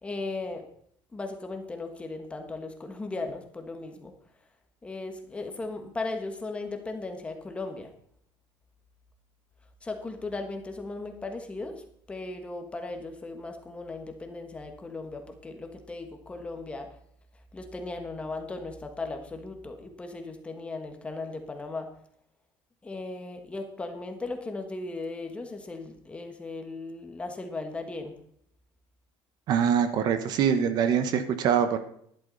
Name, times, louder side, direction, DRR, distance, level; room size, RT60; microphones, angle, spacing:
voice 1, 0.0-0.6 1.1-4.1 4.8-7.9 9.8-11.8 12.1-16.9 17.5-21.9 22.8-28.1, left 3 dB, 10° left, 5 dB, 1.4 m, -37 dB
voice 2, 29.5-31.8, right 8 dB, 45° right, 10 dB, 1.0 m, -24 dB
11.5 x 11.0 x 4.0 m, 0.67 s
cardioid pair, 160°, 10 cm